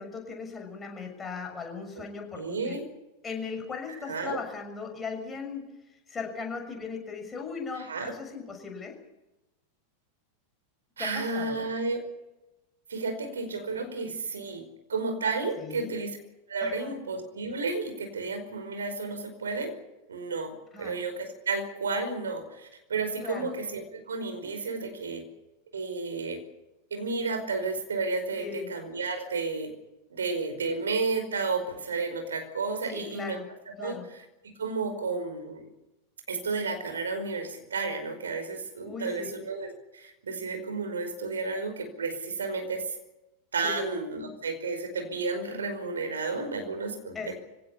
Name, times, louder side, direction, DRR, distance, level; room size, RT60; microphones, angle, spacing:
voice 1, 0.0-2.8 3.2-5.6 6.1-9.0 11.0-11.7 15.6-15.9 16.6-16.9 20.7-20.9 23.2-23.6 28.4-28.7 32.9-33.5 33.8-34.1 38.8-39.3 43.6-43.8 47.1-47.4, left 5 dB, 15° left, 3 dB, 6.5 m, -38 dB
voice 2, 2.4-2.8 4.1-4.4 7.7-8.1 11.0-12.0 12.9-14.6 14.9-16.1 16.5-19.7 20.1-20.5 20.8-25.2 25.7-26.4 26.9-29.7 30.1-33.4 33.8-34.2 34.6-35.6 36.3-42.8 43.5-47.1, right 4 dB, 70° right, 7 dB, 5.1 m, -32 dB
24.0 x 17.5 x 8.6 m, 0.97 s
figure-of-eight pair, 90°, 0 cm